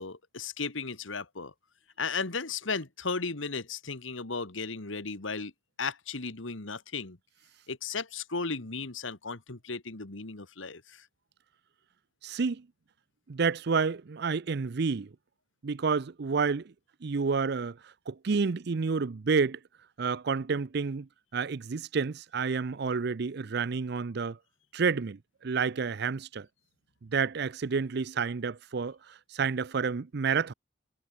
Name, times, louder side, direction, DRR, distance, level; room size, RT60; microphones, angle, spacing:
voice 1, 0.0-1.5 2.0-5.5 5.8-7.2 7.7-11.0, left 4 dB, 80° left, 2.0 m, -35 dB
voice 2, 12.2-12.7 13.3-15.1 15.6-16.7 17.0-17.8 18.1-19.6 20.0-24.4 24.7-26.5 27.0-29.0 29.3-30.5, right 5 dB, 55° right, 0.5 m, -29 dB
head